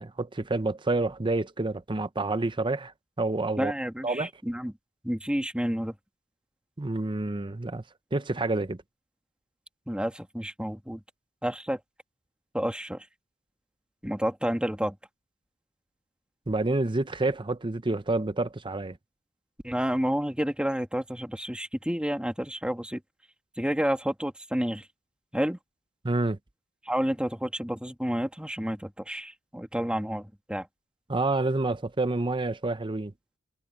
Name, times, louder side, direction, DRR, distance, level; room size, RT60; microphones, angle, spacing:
voice 1, 0.0-2.9 3.2-3.7 4.0-4.3 6.8-7.8 8.1-8.8 16.5-19.0 26.0-26.4 31.1-33.1, right 2 dB, 25° right, 0.7 m, -28 dB
voice 2, 3.6-4.7 5.0-5.9 9.9-11.0 11.4-11.8 12.5-13.1 14.0-15.0 19.6-23.0 23.6-24.9 25.3-25.6 26.8-30.7, equal, 5° right, 2.0 m, -30 dB
head